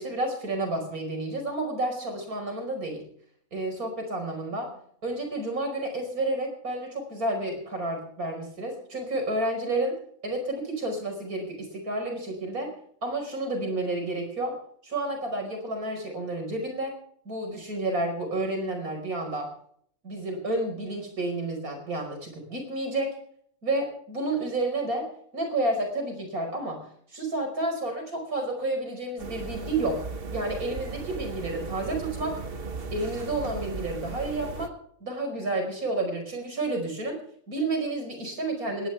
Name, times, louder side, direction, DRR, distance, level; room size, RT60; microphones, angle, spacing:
voice 1, 0.0-3.0 3.5-4.7 5.0-10.0 10.2-12.7 13.0-14.6 14.8-16.9 17.3-19.5 20.0-23.1 23.6-25.1 25.3-30.0 30.3-32.4 32.9-34.7 35.0-37.2 37.5-38.9, right 2 dB, 90° right, 3 dB, 5.5 m, -30 dB
sound 1, 29.2-34.7, right 4 dB, 45° right, 1.3 m, -36 dB
19.5 x 18.5 x 3.5 m, 0.64 s
omnidirectional pair, 1.5 m